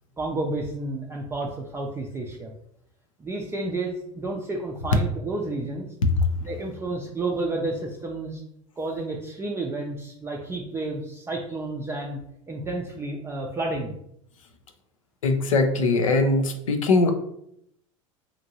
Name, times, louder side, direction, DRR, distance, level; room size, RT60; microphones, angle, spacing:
voice 1, 0.2-2.5 3.2-5.9 6.4-8.4 8.8-12.2 12.5-13.9, right 2 dB, 15° right, 0 dB, 0.4 m, -31 dB
voice 2, 15.2-17.1, left 3 dB, 85° left, 6 dB, 0.5 m, -21 dB
2.8 x 2.5 x 2.7 m, 0.74 s
hypercardioid pair, 85°, 17 cm